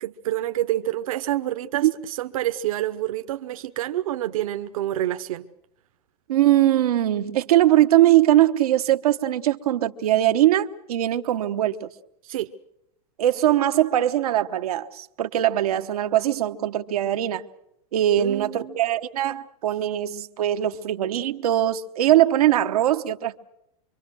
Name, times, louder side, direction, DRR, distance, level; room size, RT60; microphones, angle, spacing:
voice 1, 0.0-5.5 12.2-12.5 18.2-18.8, right 13 dB, 65° right, 1.0 m, -28 dB
voice 2, 6.3-11.9 13.2-17.4 17.9-23.4, right 13 dB, 85° right, 1.1 m, -21 dB
25.5 x 23.5 x 6.3 m
supercardioid pair, 175°, 19 cm